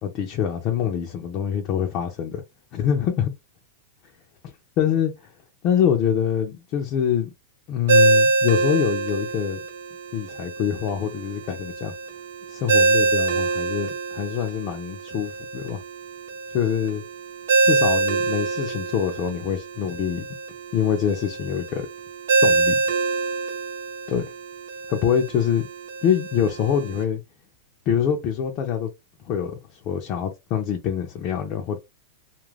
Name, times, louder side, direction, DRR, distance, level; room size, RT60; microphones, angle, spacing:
voice 1, 0.0-2.4 2.7-3.3 4.8-5.1 5.6-7.3 7.7-9.6 10.1-11.9 12.5-15.8 16.5-17.0 17.6-20.3 20.7-21.9 22.4-22.8 24.1-24.2 24.9-25.7 26.0-27.2 27.9-28.9 29.3-31.8, left 8 dB, 35° left, 0.5 m, -25 dB
Ringtone, 7.9-27.0, right 3 dB, 85° right, 0.6 m, -25 dB
2.4 x 2.1 x 3.2 m
supercardioid pair, 150°, 0 cm